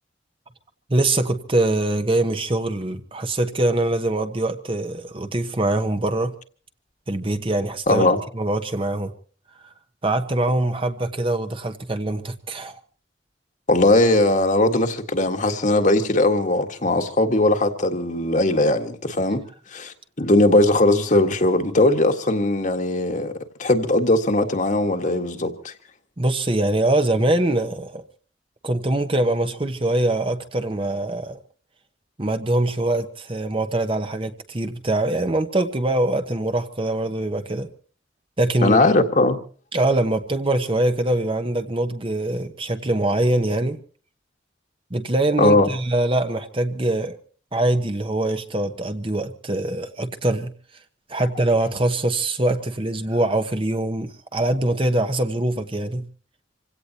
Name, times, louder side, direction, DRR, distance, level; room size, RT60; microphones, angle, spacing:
voice 1, 0.9-6.3 7.1-8.1 8.3-9.1 10.0-12.8 26.2-28.0 28.6-31.4 32.2-37.7 38.4-38.8 39.7-43.8 44.9-47.2 47.5-50.5 51.1-56.1, right 2 dB, 30° right, 1.1 m, -23 dB
voice 2, 7.9-8.2 13.7-19.4 19.7-23.3 23.6-25.7 38.6-39.4 45.4-45.7, left 2 dB, 45° left, 1.7 m, -19 dB
27.0 x 17.0 x 2.9 m
head